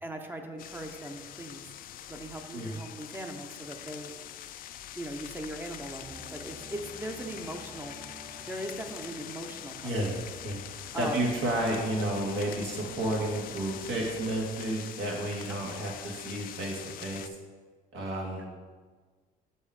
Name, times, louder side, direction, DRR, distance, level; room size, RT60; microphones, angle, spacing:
voice 1, 0.0-1.7 2.1-4.1 4.9-8.0 8.5-10.1 10.9-11.2 18.4-18.5, right 1 dB, 10° right, 4 dB, 0.7 m, -39 dB
sound 1, 0.6-17.3, left 11 dB, 55° left, 0.4 m, -44 dB
sound 2, 6.0-11.7 11.9-12.0, right 1 dB, 45° right, 1.7 m, -52 dB
voice 2, 9.8-10.2 10.4-10.6 11.0-17.3 17.9-18.4, right 1 dB, 85° right, -2 dB, 2.0 m, -31 dB
6.1 x 5.4 x 4.9 m, 1.4 s
cardioid pair, 110°, 17 cm